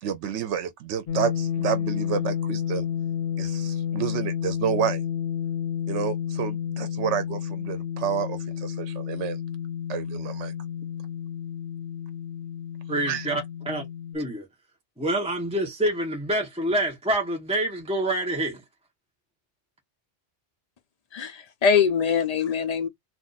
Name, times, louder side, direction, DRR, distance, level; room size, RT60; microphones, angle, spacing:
voice 1, 0.0-2.9 3.4-5.0 5.9-9.4 9.9-10.5 13.1-13.3, right 8 dB, 80° right, 0.9 m, -29 dB
sound 1, 1.1-14.2, left 9 dB, 75° left, 0.9 m, -31 dB
voice 2, 12.9-13.9 14.1-14.4 15.0-18.6, right 1 dB, 5° right, 0.7 m, -27 dB
voice 3, 21.1-22.9, left 6 dB, 50° left, 0.5 m, -23 dB
2.5 x 2.4 x 3.9 m
omnidirectional pair, 1.2 m